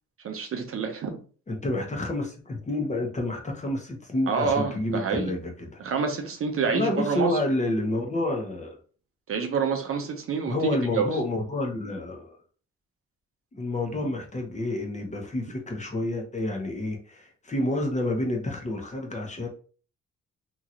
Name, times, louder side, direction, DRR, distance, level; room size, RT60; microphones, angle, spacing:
voice 1, 0.2-1.2 4.3-5.3 5.8-7.4 9.3-11.1, right 5 dB, 45° right, 0.7 m, -27 dB
voice 2, 1.5-5.8 6.7-8.8 10.5-12.4 13.5-19.5, left 1 dB, 25° left, 0.9 m, -29 dB
2.9 x 2.8 x 2.5 m
cardioid pair, 90°, 30 cm